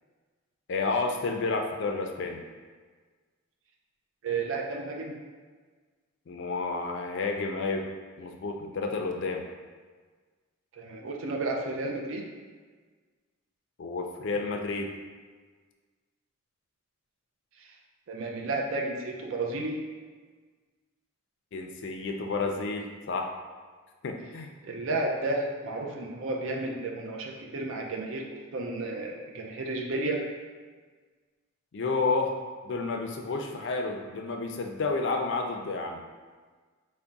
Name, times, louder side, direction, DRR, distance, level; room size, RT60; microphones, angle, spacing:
voice 1, 0.7-2.4 6.3-7.9 8.2-9.4 13.8-14.9 21.5-23.3 24.0-24.5 31.7-32.4 32.6-36.0, left 3 dB, 55° left, 3 dB, 0.4 m, -30 dB
voice 2, 4.2-5.2 10.7-12.3 18.1-19.8 24.6-28.2 28.5-30.2, right 2 dB, 65° right, 1 dB, 0.4 m, -32 dB
3.4 x 2.1 x 3.9 m, 1.5 s
head